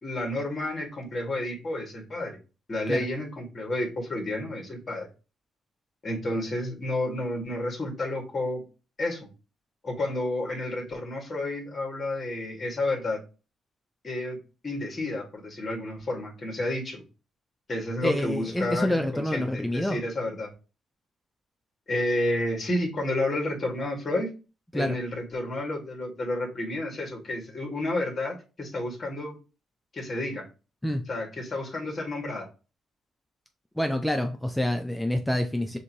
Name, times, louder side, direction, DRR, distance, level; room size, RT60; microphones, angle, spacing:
voice 1, 0.0-2.4 2.7-5.1 6.0-8.6 9.0-9.3 9.8-13.2 14.0-14.4 14.6-17.0 17.7-20.5 21.9-24.3 24.7-29.4 29.9-30.4 31.1-32.5, left 1 dB, 35° left, 2.0 m, -30 dB
voice 2, 18.0-20.0 24.7-25.0 30.8-31.0 33.8-35.8, left 1 dB, 5° left, 0.5 m, -27 dB
6.4 x 2.7 x 3.0 m
cardioid pair, 90°, 0 cm